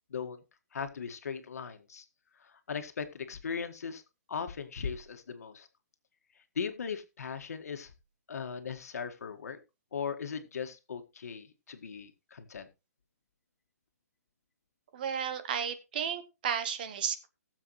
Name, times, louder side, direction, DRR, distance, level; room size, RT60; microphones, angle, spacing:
voice 1, 0.1-0.4 0.7-2.1 2.4-4.0 4.3-5.7 6.6-7.9 8.3-9.6 9.9-12.7, left 6 dB, 65° left, 7 dB, 1.8 m, -38 dB
voice 2, 14.9-17.3, right 7 dB, 35° right, 11 dB, 0.9 m, -33 dB
18.5 x 7.4 x 3.2 m, 0.26 s
hypercardioid pair, 175°, 9 cm